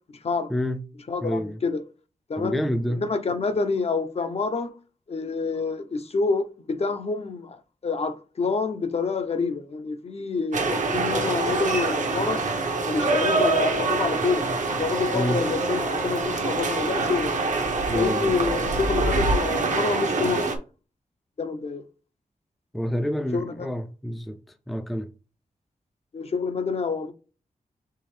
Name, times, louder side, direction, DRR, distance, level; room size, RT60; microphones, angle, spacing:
voice 1, 0.5-0.8 1.2-1.6 2.4-3.0 15.1-15.4 17.9-18.3 22.7-24.4 24.7-25.1, equal, ahead, 0.4 m, -28 dB
voice 2, 1.1-1.8 2.3-2.6 2.9-4.8 5.1-12.5 12.9-14.5 14.8-17.4 17.9-20.5 21.4-21.9 23.3-23.7 26.1-27.1, left 4 dB, 50° left, 0.6 m, -27 dB
sound 1, 10.5-20.6, right 3 dB, 65° right, 0.8 m, -25 dB
4.6 x 3.5 x 3.2 m
wide cardioid pair, 110°, 14 cm